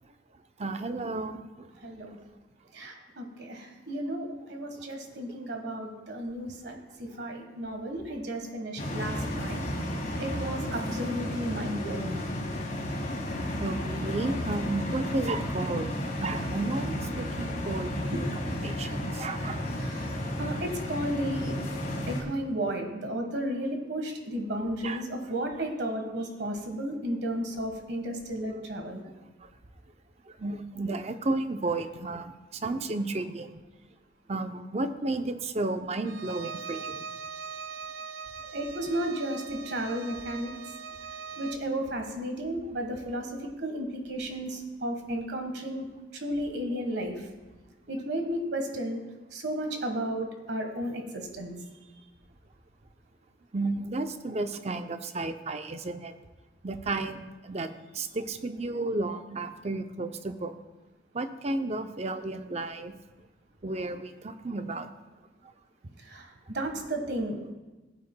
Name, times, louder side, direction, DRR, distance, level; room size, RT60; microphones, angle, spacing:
voice 1, 0.6-1.7 6.7-6.8 13.6-15.9 16.2-18.1 18.6-19.6 24.8-25.0 29.4-29.5 30.3-33.5 34.3-37.0 53.5-56.1 56.6-60.5 61.1-62.9 63.6-64.9, right 2 dB, 35° right, 8 dB, 0.5 m, -33 dB
voice 2, 1.8-2.2 2.7-9.6 10.2-12.2 18.1-18.2 19.8-20.1 20.4-21.5 22.1-29.0 38.4-40.5 41.4-43.3 43.6-45.9 46.1-47.1 47.9-49.0 49.3-51.5 66.0-66.3 66.5-67.4, right 1 dB, 65° right, 4 dB, 1.4 m, -33 dB
sound 1, 8.8-22.2, left 1 dB, 45° left, 1.8 m, -33 dB
Bowed string instrument, 36.1-41.7, right 5 dB, 90° right, 0.4 m, -41 dB
16.5 x 8.6 x 2.2 m, 1.2 s
head